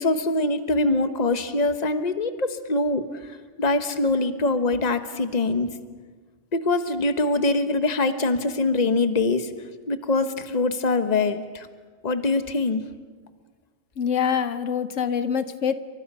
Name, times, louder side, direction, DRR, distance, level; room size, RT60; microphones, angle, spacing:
voice 1, 0.0-3.3 3.6-5.7 6.5-9.5 9.9-11.7 12.0-12.8, left 2 dB, 35° left, 9 dB, 1.2 m, -23 dB
voice 2, 14.0-15.7, left 7 dB, 80° left, 11 dB, 1.3 m, -25 dB
28.5 x 25.0 x 5.5 m, 1.5 s
omnidirectional pair, 1.3 m